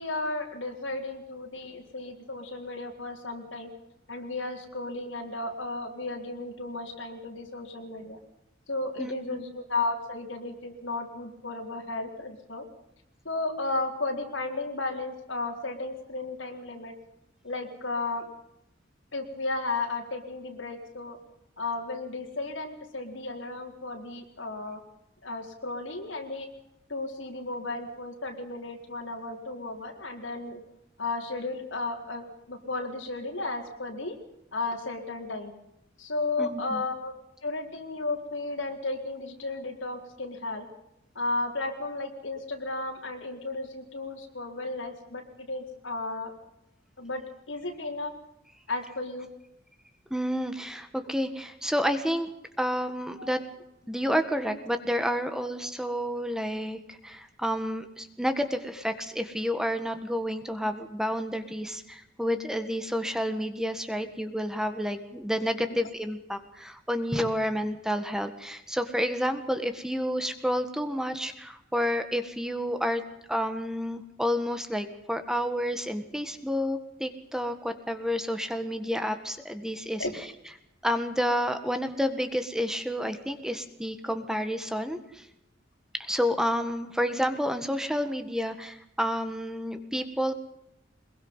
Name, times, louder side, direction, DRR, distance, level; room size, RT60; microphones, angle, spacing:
voice 1, 0.0-3.7 4.1-8.2 8.7-12.7 13.2-16.9 17.4-18.3 19.1-21.2 21.6-24.8 25.2-26.5 26.9-30.6 31.0-34.1 34.5-35.5 36.0-37.1 37.4-40.7 41.1-46.3 47.0-47.2 47.5-48.1 48.7-49.3 53.2-53.4 65.7-65.8 80.0-80.1, left 2 dB, 85° left, 2 dB, 4.5 m, -34 dB
voice 2, 9.0-9.4 36.4-36.8 50.1-52.3 52.6-53.4 53.9-73.0 73.3-80.0 80.8-85.3 85.9-90.3, equal, 5° right, 8 dB, 1.7 m, -30 dB
24.0 x 22.0 x 5.7 m, 0.81 s
head